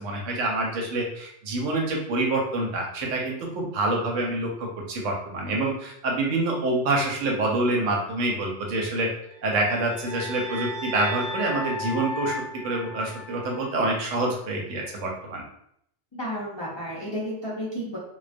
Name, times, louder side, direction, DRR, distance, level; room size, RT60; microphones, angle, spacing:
voice 1, 0.0-9.1 9.4-12.4 12.6-15.5, right 2 dB, 85° right, 0 dB, 1.0 m, -26 dB
sound 1, 9.4-13.7, left 1 dB, 55° right, 0.4 m, -35 dB
voice 2, 16.1-18.0, equal, 45° left, -8 dB, 0.3 m, -32 dB
2.2 x 2.2 x 2.5 m, 0.72 s
omnidirectional pair, 1.3 m